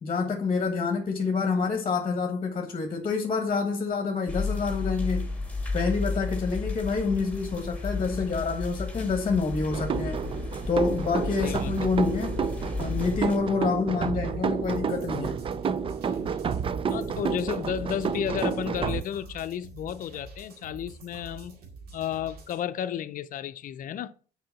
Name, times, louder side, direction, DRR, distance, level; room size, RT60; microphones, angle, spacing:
voice 1, 0.0-5.3 5.7-10.2 10.7-12.4 12.8-15.4, left 4 dB, 30° left, 1.3 m, -27 dB
sound 1, 4.3-13.4, left 3 dB, 10° left, 2.5 m, -33 dB
sound 2, 9.7-19.0, right 6 dB, 30° right, 0.5 m, -30 dB
voice 2, 11.4-11.9 16.9-21.6 21.9-24.1, left 10 dB, 55° left, 0.6 m, -33 dB
sound 3, 14.6-22.6, right 3 dB, 65° right, 2.2 m, -46 dB
6.6 x 4.9 x 5.8 m
cardioid pair, 110°, 17 cm